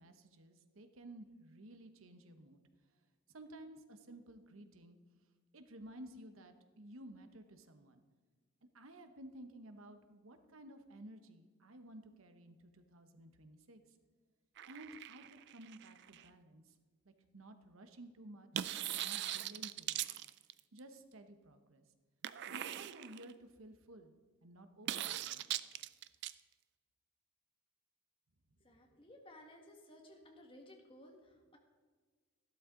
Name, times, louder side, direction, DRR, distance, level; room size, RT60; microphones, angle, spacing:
voice 1, 0.0-2.6 3.3-5.0 5.5-8.0 8.7-13.8 14.7-16.8 17.0-20.2 20.7-21.8 22.5-24.1 24.4-25.4, right 1 dB, 90° right, 8 dB, 1.0 m, -54 dB
sound 1, 14.6-16.3 18.5-20.8 22.2-23.3 24.9-26.3, right 12 dB, 55° right, 0.4 m, -41 dB
voice 2, 28.6-31.6, left 1 dB, 25° left, 2 dB, 1.7 m, -58 dB
14.0 x 12.0 x 3.8 m, 1.4 s
head